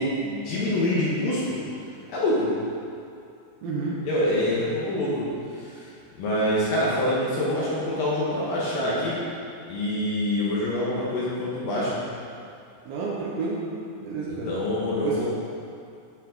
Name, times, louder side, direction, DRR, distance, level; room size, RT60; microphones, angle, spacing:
voice 1, 0.0-1.6 2.1-2.5 4.0-5.3 5.6-5.9 6.2-9.2 9.7-12.0 14.3-15.2, left 1 dB, 65° left, -7 dB, 2.4 m, -25 dB
voice 2, 3.6-4.0 12.9-13.6 14.0-14.5 15.0-15.2, right 4 dB, 70° right, -6 dB, 2.4 m, -30 dB
13.0 x 5.6 x 3.8 m, 2.4 s
omnidirectional pair, 5.4 m